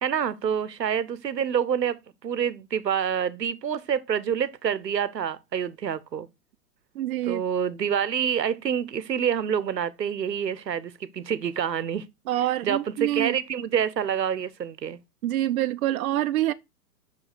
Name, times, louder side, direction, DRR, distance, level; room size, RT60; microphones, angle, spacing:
voice 1, 0.0-6.3 7.2-12.0 12.6-15.0, right 8 dB, 85° right, 0.9 m, -27 dB
voice 2, 6.9-7.4 12.3-13.4 15.2-16.5, right 13 dB, 60° right, 0.5 m, -26 dB
6.0 x 5.0 x 4.1 m
figure-of-eight pair, 110°, 48 cm